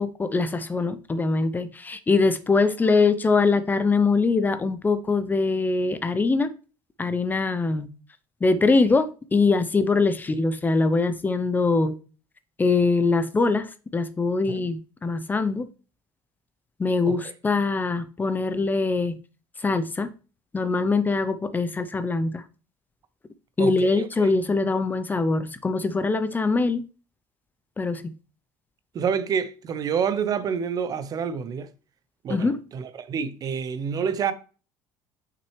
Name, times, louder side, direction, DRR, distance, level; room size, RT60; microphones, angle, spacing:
voice 1, 0.0-6.5 7.0-7.9 8.4-12.0 12.6-15.7 16.8-19.2 19.6-20.1 20.5-22.4 23.6-26.9 27.8-28.1 32.3-32.6, left 3 dB, 20° left, 0.6 m, -23 dB
voice 2, 23.6-24.3 28.9-31.7 32.2-34.3, right 7 dB, 45° right, 0.7 m, -28 dB
6.0 x 6.0 x 3.2 m
cardioid pair, 105°, 9 cm